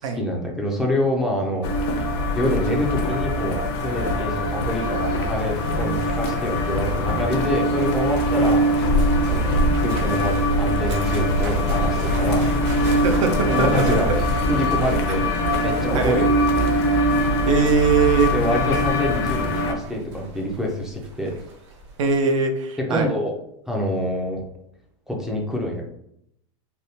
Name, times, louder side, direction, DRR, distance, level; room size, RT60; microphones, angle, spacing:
voice 1, 0.0-2.0 2.3-8.6 9.3-12.8 13.4-14.1 14.5-15.3 15.6-17.0 18.3-21.4 22.9-23.3 23.7-24.4 25.1-25.9, left 1 dB, 5° right, -1 dB, 0.3 m, -26 dB
sound 1, 1.6-19.7, equal, 55° left, 0.6 m, -22 dB
sound 2, 4.8-22.2, right 2 dB, 70° right, 1.1 m, -39 dB
voice 2, 13.0-14.2 15.9-16.2 17.5-18.3 22.0-23.1, right 5 dB, 85° right, 5 dB, 0.6 m, -21 dB
3.4 x 2.2 x 2.7 m, 0.73 s
supercardioid pair, 155°, 16 cm